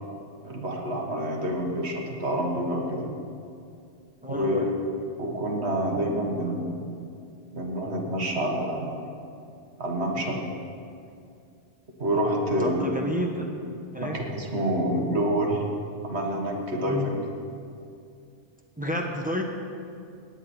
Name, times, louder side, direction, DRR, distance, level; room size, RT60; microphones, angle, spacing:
voice 1, 0.4-3.1 4.2-4.7 5.2-6.9 7.5-9.0 9.8-10.4 12.0-12.9 14.0-15.6 16.0-17.2, right 1 dB, 55° right, 0 dB, 1.8 m, -27 dB
voice 2, 4.2-4.7 12.6-13.5 13.9-14.2 16.8-17.2 18.8-19.4, left 1 dB, 5° right, 1 dB, 1.1 m, -30 dB
17.5 x 9.8 x 4.4 m, 2.5 s
omnidirectional pair, 1.3 m